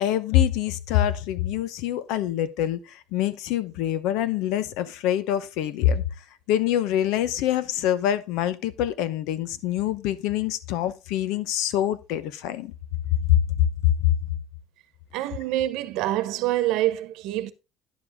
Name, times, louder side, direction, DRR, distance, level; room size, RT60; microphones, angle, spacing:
voice 1, 0.0-2.8 3.1-6.0 6.5-12.7 13.3-13.4 14.0-14.1, left 11 dB, 80° left, 0.9 m, -25 dB
voice 2, 15.1-17.5, right 14 dB, 70° right, 1.0 m, -26 dB
10.5 x 7.2 x 3.6 m
cardioid pair, 175°, 0 cm